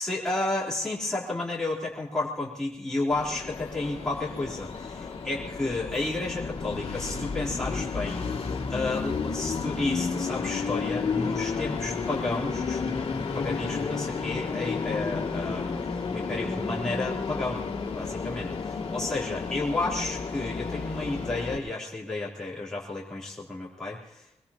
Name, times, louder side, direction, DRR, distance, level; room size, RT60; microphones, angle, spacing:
voice 1, 0.0-8.3 8.7-15.8 16.1-17.6 17.9-18.5 18.9-24.3, left 2 dB, 5° left, -6 dB, 3.4 m, -32 dB
Train, 3.1-21.6, left 5 dB, 60° left, 2.3 m, -32 dB
23.0 x 21.0 x 2.9 m, 0.81 s
wide cardioid pair, 155°, 11 cm